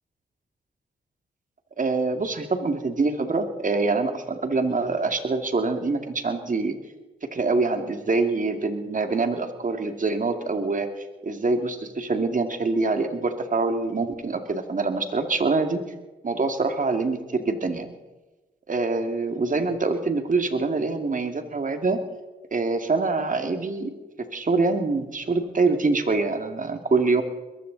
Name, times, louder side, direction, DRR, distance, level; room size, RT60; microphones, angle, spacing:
voice 1, 1.8-6.7 7.3-15.8 16.2-17.9 18.7-22.0 22.5-23.9 24.3-27.2, right 3 dB, 45° right, 6 dB, 2.5 m, -25 dB
21.5 x 15.0 x 4.1 m, 1.1 s
supercardioid pair, 45°, 19 cm